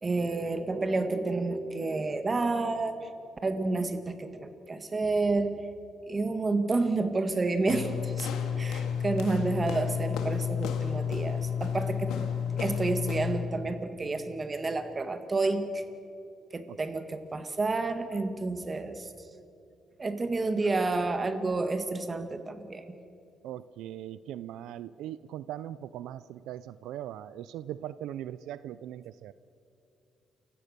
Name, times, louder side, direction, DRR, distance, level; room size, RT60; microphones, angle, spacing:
voice 1, 0.0-3.1 3.4-5.6 6.1-8.3 8.6-12.3 12.6-15.8 16.5-19.1 20.0-22.8, right 3 dB, 30° right, 8 dB, 2.0 m, -30 dB
sound 1, 7.7-13.5, left 7 dB, 90° left, 2.1 m, -31 dB
voice 2, 23.4-29.3, right 12 dB, 90° right, 16 dB, 0.4 m, -40 dB
29.0 x 16.0 x 6.8 m, 2.7 s
cardioid pair, 90°, 0 cm